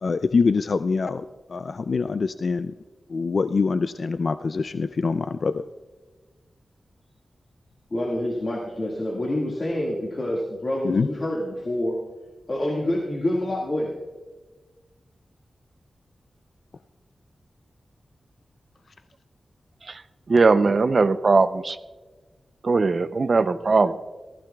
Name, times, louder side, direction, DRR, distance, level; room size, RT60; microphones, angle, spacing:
voice 1, 0.0-2.7 3.1-5.7 10.8-11.1 23.8-23.9, left 4 dB, 55° left, 12 dB, 0.3 m, -24 dB
voice 2, 7.9-12.0 12.5-14.0, left 1 dB, 40° left, -3 dB, 1.8 m, -27 dB
voice 3, 20.3-21.8 22.6-23.9, right 4 dB, 50° right, 12 dB, 0.6 m, -19 dB
18.5 x 14.5 x 2.3 m, 1.3 s
wide cardioid pair, 115°, 0 cm